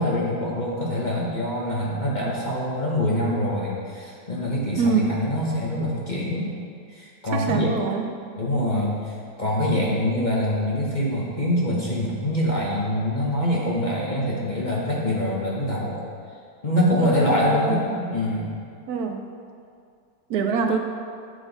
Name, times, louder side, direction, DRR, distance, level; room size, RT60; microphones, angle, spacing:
voice 1, 0.0-6.5 6.9-7.7 8.4-16.0 16.6-18.5, left 1 dB, 35° left, -5 dB, 1.0 m, -24 dB
voice 2, 4.8-5.2 7.3-8.1 17.5-17.8 18.9-19.3 20.3-20.8, right 5 dB, 75° right, 4 dB, 1.0 m, -24 dB
7.8 x 5.8 x 4.0 m, 2.3 s
omnidirectional pair, 1.7 m